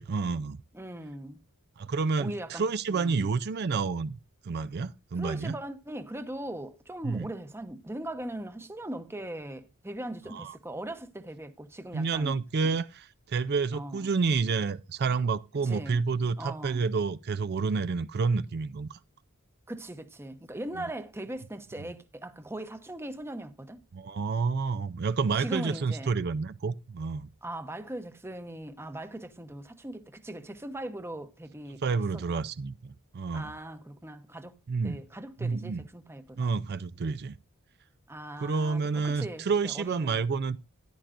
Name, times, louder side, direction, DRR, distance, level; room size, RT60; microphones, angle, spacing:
voice 1, 0.0-0.6 1.8-4.2 4.5-5.5 7.0-7.3 10.3-10.5 11.9-19.0 20.8-20.9 21.8-21.9 23.9-27.3 31.8-33.5 34.7-35.0 35.4-35.8 36.4-37.4 38.4-40.6, right 4 dB, 50° right, 0.4 m, -29 dB
voice 2, 0.7-1.4 2.2-2.6 2.9-3.3 5.2-12.4 12.6-12.8 13.7-14.1 15.6-16.0 16.4-16.9 19.7-23.8 25.4-26.1 27.4-31.8 32.1-32.4 33.3-34.5 34.8-36.6 38.1-40.2, right 1 dB, 10° right, 0.9 m, -40 dB
14.5 x 10.5 x 2.5 m
head